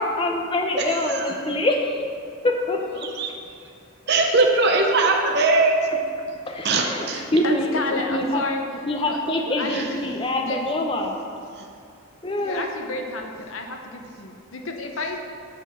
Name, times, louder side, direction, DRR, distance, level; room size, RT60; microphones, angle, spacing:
voice 1, 0.0-1.9 2.4-3.1 6.5-8.4 8.9-11.2 12.2-12.6, left 1 dB, 25° left, 2 dB, 0.6 m, -25 dB
voice 2, 0.8-1.3 3.0-3.3 4.1-5.8 6.6-7.2 9.7-9.9 11.6-11.7, right 3 dB, 50° right, 1 dB, 0.7 m, -21 dB
voice 3, 7.1-10.0 10.4-10.6 12.4-15.2, left 2 dB, 65° left, 3 dB, 0.7 m, -31 dB
6.0 x 4.5 x 6.2 m, 2.4 s
head